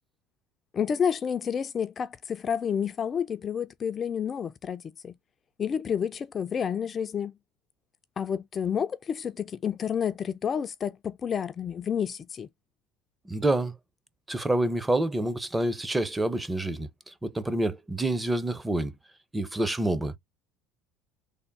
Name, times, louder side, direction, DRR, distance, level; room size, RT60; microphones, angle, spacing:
voice 1, 0.7-5.1 5.6-7.3 8.2-12.5, left 7 dB, 35° left, 0.3 m, -30 dB
voice 2, 13.2-13.7 14.3-18.9 19.3-20.2, right 1 dB, 10° right, 0.6 m, -27 dB
3.4 x 2.1 x 3.9 m
supercardioid pair, 95°, 0 cm